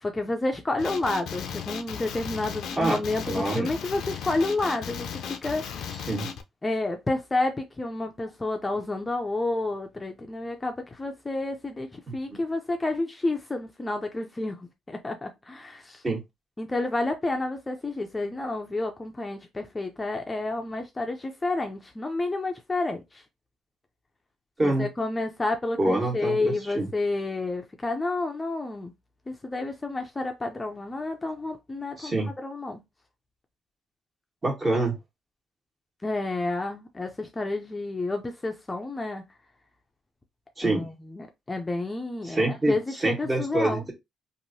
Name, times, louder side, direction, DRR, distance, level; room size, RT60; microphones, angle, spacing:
voice 1, 0.0-5.1 5.4-5.9 6.6-16.0 16.6-23.2 24.6-28.9 29.3-32.1 32.4-32.8 36.0-39.2 40.6-43.8, left 2 dB, 20° left, 0.5 m, -30 dB
Male speech man speaking, 0.8-6.4, left 7 dB, 75° left, 0.5 m, -36 dB
voice 2, 3.3-3.7 6.1-6.3 12.1-12.4 16.0-16.2 24.6-24.9 25.8-26.9 32.0-32.3 34.4-34.9 40.6-40.8 42.2-43.9, right 2 dB, 30° right, 1.5 m, -26 dB
2.9 x 2.6 x 2.7 m
cardioid pair, 90°, 0 cm